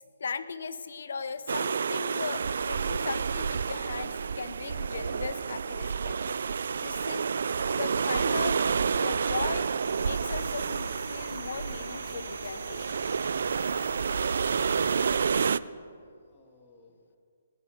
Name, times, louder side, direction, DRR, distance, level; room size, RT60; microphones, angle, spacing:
voice 1, 0.2-7.3 7.7-8.6 9.0-12.9, left 5 dB, 70° left, 14 dB, 0.8 m, -38 dB
sound 1, 0.9-15.1, right 4 dB, 15° right, 3.5 m, -66 dB
sound 2, 1.5-15.6, right 6 dB, 70° right, 0.3 m, -29 dB
sound 3, 9.8-15.2, left 7 dB, 55° left, 1.4 m, -48 dB
voice 2, 15.8-17.2, left 3 dB, 20° left, 0 dB, 2.1 m, -57 dB
19.5 x 7.1 x 7.1 m, 2.2 s
hypercardioid pair, 150°, 0 cm